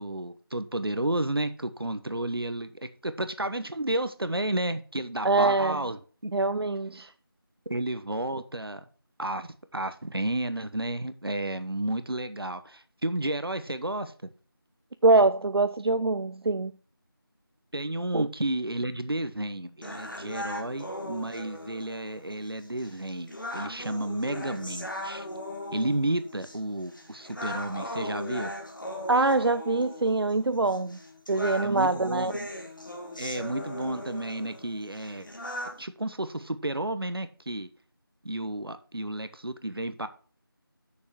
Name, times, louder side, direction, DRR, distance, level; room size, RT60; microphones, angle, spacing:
voice 1, 0.0-2.7 3.0-6.0 6.2-6.3 7.7-8.8 9.2-14.3 17.7-25.3 25.7-28.5 31.6-32.5 33.2-35.3 35.8-37.7 38.2-40.1, right 1 dB, 70° right, 1.0 m, -32 dB
voice 2, 5.2-5.8 6.3-7.1 15.0-16.7 18.1-18.3 29.1-31.0 31.3-32.3, right 3 dB, 90° right, 0.5 m, -24 dB
sound 1, 19.8-35.8, left 1 dB, 55° left, 1.7 m, -39 dB
6.5 x 5.8 x 6.2 m
figure-of-eight pair, 180°, 13 cm